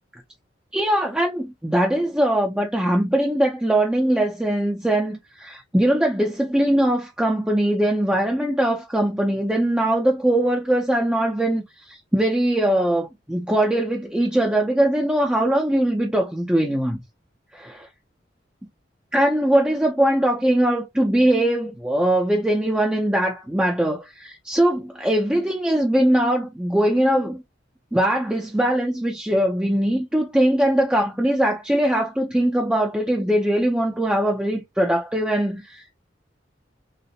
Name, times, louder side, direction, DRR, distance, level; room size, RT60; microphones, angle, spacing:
voice 1, 0.7-17.0 17.5-17.9 19.1-27.4 27.9-36.0, right 1 dB, 5° right, 0.5 m, -21 dB
3.9 x 2.0 x 2.7 m
head